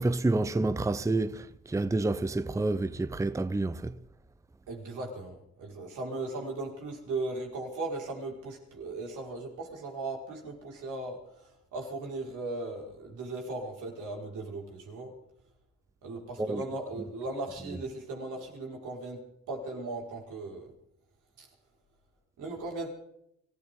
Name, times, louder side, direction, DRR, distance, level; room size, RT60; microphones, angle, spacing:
voice 1, 0.0-4.0 16.4-16.6, right 2 dB, 10° right, 0.7 m, -28 dB
voice 2, 4.7-15.1 16.0-20.7 21.4-21.5 22.4-22.9, right 2 dB, 85° right, 5.3 m, -37 dB
24.5 x 15.5 x 3.8 m
cardioid pair, 90°, 30 cm